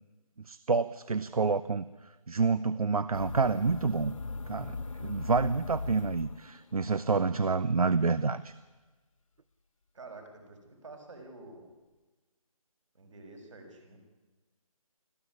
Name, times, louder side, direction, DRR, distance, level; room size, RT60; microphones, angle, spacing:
voice 1, 0.4-4.1 4.5-8.5, right 4 dB, 75° right, 16 dB, 1.0 m, -28 dB
sound 1, 3.1-6.9, left 3 dB, 60° left, 1.1 m, -39 dB
voice 2, 9.9-11.7 12.9-14.0, right 3 dB, 55° right, 3 dB, 6.7 m, -49 dB
25.5 x 15.5 x 9.9 m, 1.2 s
figure-of-eight pair, 170°, 19 cm